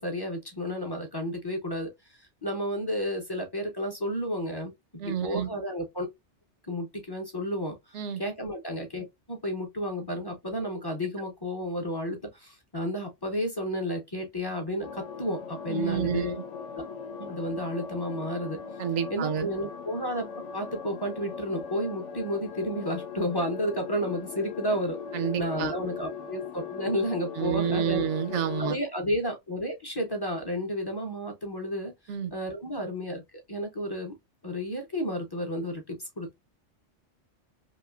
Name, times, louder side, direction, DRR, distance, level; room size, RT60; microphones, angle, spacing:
voice 1, 0.0-4.7 5.0-6.1 6.7-16.4 17.2-18.6 19.1-20.3 20.5-25.0 25.4-28.0 28.6-34.1 34.4-36.3, equal, 30° left, 0.5 m, -32 dB
voice 2, 5.0-5.5 7.9-8.2 15.7-16.4 18.8-19.5 25.1-25.8 27.4-28.8 32.1-32.3, right 8 dB, 75° right, 0.9 m, -29 dB
sound 1, 14.8-28.7, left 6 dB, 80° left, 0.9 m, -39 dB
3.0 x 2.6 x 2.3 m
omnidirectional pair, 1.2 m